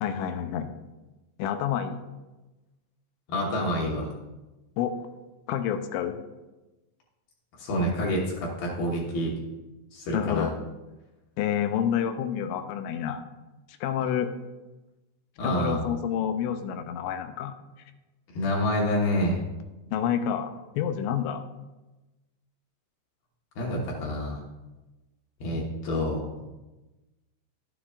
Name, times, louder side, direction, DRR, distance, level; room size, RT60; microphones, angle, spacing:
voice 1, 0.0-0.7 1.4-2.0 4.8-4.9 5.5-6.2 10.1-10.6 11.4-13.3 13.8-14.3 15.4-17.6 19.9-21.4, left 9 dB, 85° left, 8 dB, 2.9 m, -28 dB
voice 2, 3.3-4.1 7.6-9.3 9.9-10.5 15.4-15.8 18.3-19.4 23.6-24.4 25.4-26.3, equal, 65° left, -3 dB, 2.9 m, -27 dB
11.0 x 10.0 x 2.4 m, 1.1 s
omnidirectional pair, 5.1 m